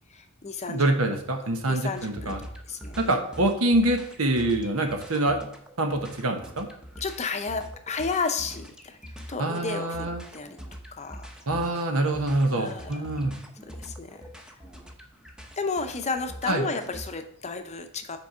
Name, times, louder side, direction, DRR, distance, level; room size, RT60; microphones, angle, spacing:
voice 1, 0.1-1.2 1.7-2.3 2.7-3.2 7.0-9.0 9.3-10.1 10.3-10.6 10.9-11.3 12.5-13.0 13.8-14.2 15.6-18.2, left 4 dB, 30° left, 7 dB, 0.7 m, -32 dB
voice 2, 0.7-2.4 3.0-5.4 5.8-6.7 9.4-10.2 11.5-13.4 16.5-16.7, right 1 dB, 75° right, 5 dB, 1.2 m, -25 dB
sound 1, 2.0-17.1, equal, 5° right, 0.8 m, -44 dB
6.2 x 4.6 x 5.6 m, 0.65 s
head